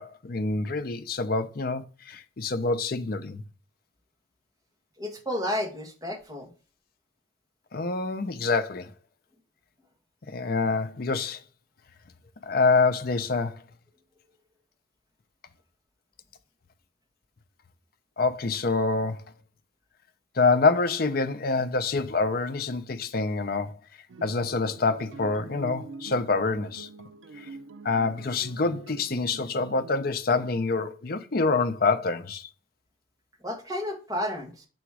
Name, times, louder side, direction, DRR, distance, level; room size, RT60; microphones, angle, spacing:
voice 1, 0.0-3.4 7.7-8.9 10.3-11.4 12.4-13.6 18.2-19.2 20.4-23.8 24.2-26.9 27.4-27.5 27.8-32.5, left 3 dB, 50° left, 0.6 m, -26 dB
voice 2, 5.0-6.5 33.4-34.7, left 1 dB, 20° right, 1.2 m, -32 dB
sound 1, 24.1-30.0, right 3 dB, 75° right, 0.4 m, -45 dB
7.0 x 3.0 x 4.7 m
head